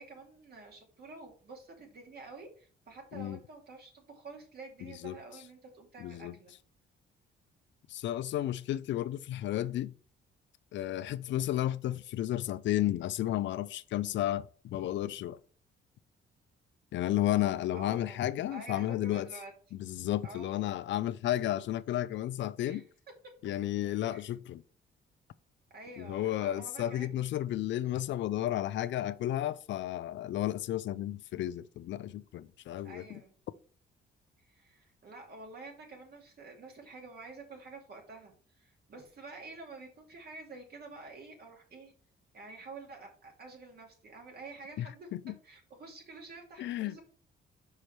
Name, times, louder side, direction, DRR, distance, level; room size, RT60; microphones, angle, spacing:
voice 1, 0.0-6.5 17.7-18.2 18.5-19.5 20.2-20.6 22.6-22.8 24.0-24.4 25.7-27.1 32.8-33.3 34.4-41.9 42.3-45.1 45.4-47.0, right 3 dB, 50° right, 2.4 m, -49 dB
voice 2, 4.8-5.2 6.0-6.4 7.9-9.9 10.7-15.4 16.9-19.3 19.8-22.8 23.4-24.6 26.0-33.2 44.8-45.3 46.6-47.0, left 13 dB, 65° left, 0.4 m, -33 dB
5.5 x 4.8 x 4.4 m
cardioid pair, 90°, 20 cm